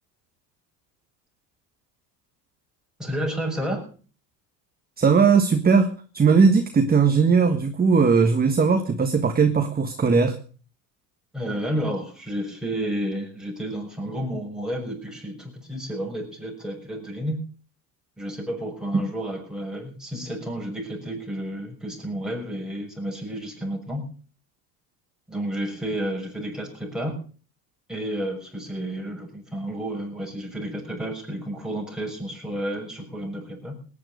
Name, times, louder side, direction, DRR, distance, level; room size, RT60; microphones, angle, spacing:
voice 1, 3.0-3.8 11.3-17.4 18.2-24.0 25.3-27.2 27.9-33.8, right 1 dB, ahead, 0 dB, 6.3 m, -31 dB
voice 2, 5.0-10.4 18.9-19.1, right 5 dB, 20° right, 6 dB, 1.5 m, -19 dB
18.0 x 9.9 x 6.4 m, 0.41 s
supercardioid pair, 105°, 47 cm